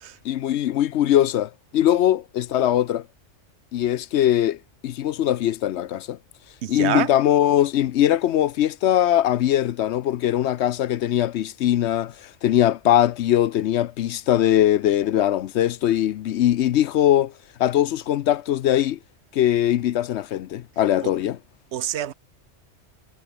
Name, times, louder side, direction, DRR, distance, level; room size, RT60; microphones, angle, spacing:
voice 1, 0.2-3.0 3.7-4.6 4.8-6.2 6.7-12.1 12.4-17.3 17.6-19.0 19.3-21.4, left 12 dB, 70° left, 0.9 m, -21 dB
voice 2, 6.6-7.1 21.0-21.1 21.7-22.1, right 10 dB, 70° right, 0.9 m, -26 dB
omnidirectional pair, 1.2 m